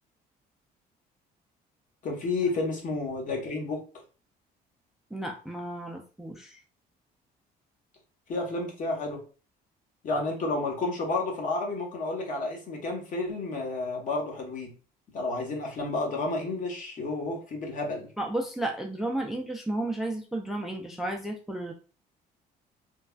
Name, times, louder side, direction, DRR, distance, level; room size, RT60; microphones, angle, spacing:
voice 1, 2.0-3.8 8.3-9.2 10.0-14.7 15.1-18.1, left 2 dB, 50° left, 0 dB, 1.1 m, -31 dB
voice 2, 5.1-6.6 18.2-21.7, right 1 dB, ahead, 3 dB, 0.3 m, -33 dB
3.2 x 2.2 x 2.3 m, 0.36 s
cardioid pair, 110°, 17 cm